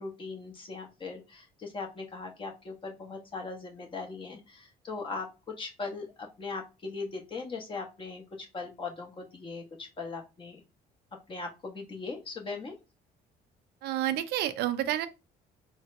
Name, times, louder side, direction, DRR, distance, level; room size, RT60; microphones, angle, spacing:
voice 1, 0.0-10.6 11.3-12.7, left 4 dB, 30° left, 0.9 m, -39 dB
voice 2, 13.8-15.1, right 12 dB, 75° right, 0.5 m, -29 dB
3.8 x 2.1 x 2.6 m
cardioid pair, 110°, 17 cm